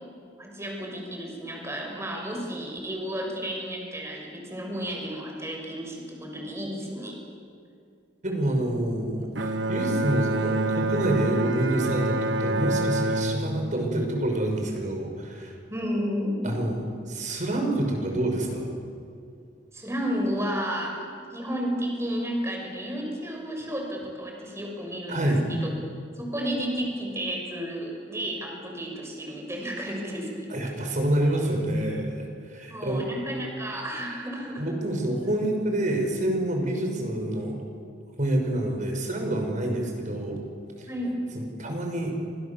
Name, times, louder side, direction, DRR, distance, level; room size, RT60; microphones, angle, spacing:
voice 1, 0.4-7.2 15.7-16.6 19.7-21.0 21.3-25.7 26.2-30.5 32.7-34.7 40.9-41.2, equal, 15° right, 0 dB, 6.5 m, -32 dB
voice 2, 8.2-15.5 16.4-18.7 25.1-25.5 30.5-33.1 34.6-37.6 38.2-40.4 40.8-40.9 41.3-42.2, right 1 dB, 45° right, 2 dB, 6.0 m, -27 dB
Bowed string instrument, 9.3-14.8, right 2 dB, 75° right, 1.5 m, -27 dB
29.0 x 27.0 x 7.4 m, 2.3 s
head